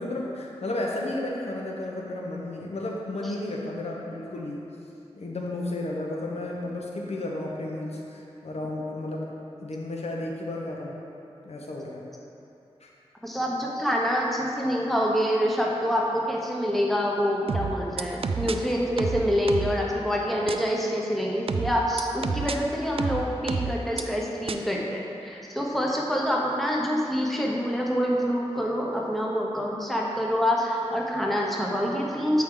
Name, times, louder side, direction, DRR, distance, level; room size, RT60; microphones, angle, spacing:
voice 1, 0.0-4.6 5.2-9.3 9.6-11.0 11.4-12.0 12.8-12.9, left 1 dB, 75° left, -2 dB, 0.9 m, -33 dB
voice 2, 13.2-32.4, equal, ahead, -2 dB, 1.0 m, -26 dB
sound 1, 17.5-18.6 19.0-19.8 20.5-20.6 21.5-22.6 23.0-24.0 24.5-24.6, right 5 dB, 60° right, 0.4 m, -28 dB
8.4 x 4.7 x 3.8 m, 2.7 s
wide cardioid pair, 65°, 11 cm